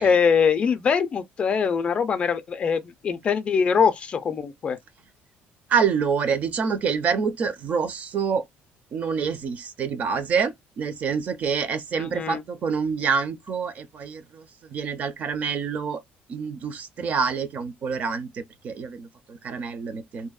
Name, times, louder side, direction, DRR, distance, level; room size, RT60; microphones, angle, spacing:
voice 1, 0.0-4.8 12.0-12.4, left 6 dB, 30° left, 0.4 m, -23 dB
voice 2, 5.7-8.4 8.9-16.0 16.3-20.3, right 6 dB, 40° right, 0.4 m, -27 dB
2.6 x 2.0 x 2.3 m
cardioid pair, 145°, 4 cm